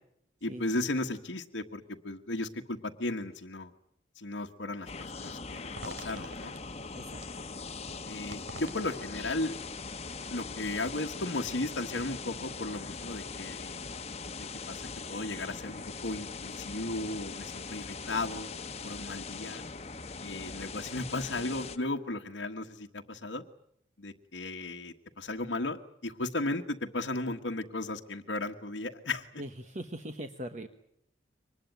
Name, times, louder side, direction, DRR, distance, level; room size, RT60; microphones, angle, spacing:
voice 1, 0.4-3.7 4.1-6.5 8.0-9.5 10.3-13.8 14.4-18.5 18.8-19.6 20.2-23.4 24.0-29.4, left 2 dB, 85° left, 2 dB, 1.4 m, -35 dB
sound 1, 4.9-21.8, left 4 dB, 35° left, 1.1 m, -41 dB
sound 2, 5.7-11.0, right 2 dB, 85° right, 3.6 m, -49 dB
voice 2, 29.4-30.7, right 1 dB, 40° right, 7 dB, 1.3 m, -40 dB
24.5 x 20.5 x 9.2 m, 0.73 s
head